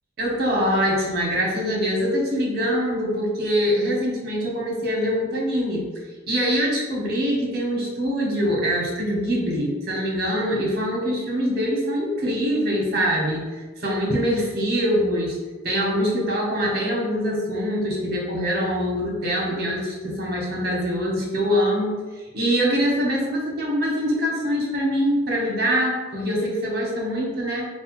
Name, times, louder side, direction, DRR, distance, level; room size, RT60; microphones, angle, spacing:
voice 1, 0.2-5.9 6.3-15.4 15.6-27.7, equal, 50° right, -3 dB, 0.9 m, -24 dB
4.6 x 2.2 x 3.0 m, 1.3 s
head